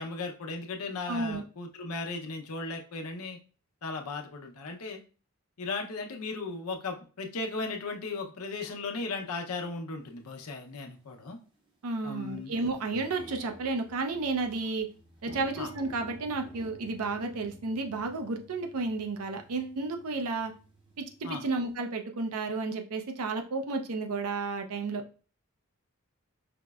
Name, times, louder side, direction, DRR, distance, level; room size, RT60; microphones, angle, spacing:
voice 1, 0.0-3.4 3.8-5.0 5.6-11.4 12.0-12.5 15.6-15.7 21.2-21.5, left 3 dB, 85° left, 3 dB, 0.6 m, -36 dB
voice 2, 1.1-1.4 11.8-14.9 15.2-20.5 21.0-25.0, right 3 dB, 85° right, 5 dB, 0.5 m, -32 dB
sound 1, 10.2-10.3 11.0-11.3 11.7-11.8 12.0-21.7, right 1 dB, 20° right, 0.5 m, -51 dB
5.0 x 2.0 x 2.3 m, 0.37 s
head